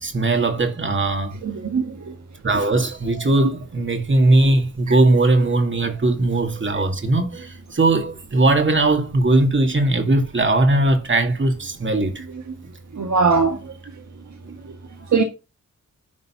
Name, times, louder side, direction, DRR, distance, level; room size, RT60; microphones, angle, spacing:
voice 1, 0.0-1.4 2.4-12.2, right 2 dB, 40° right, 2.3 m, -19 dB
voice 2, 1.4-2.2 4.9-5.0 12.9-13.7 15.1-15.2, right 4 dB, 65° right, 1.4 m, -20 dB
10.5 x 4.1 x 5.7 m
wide cardioid pair, 85°, 31 cm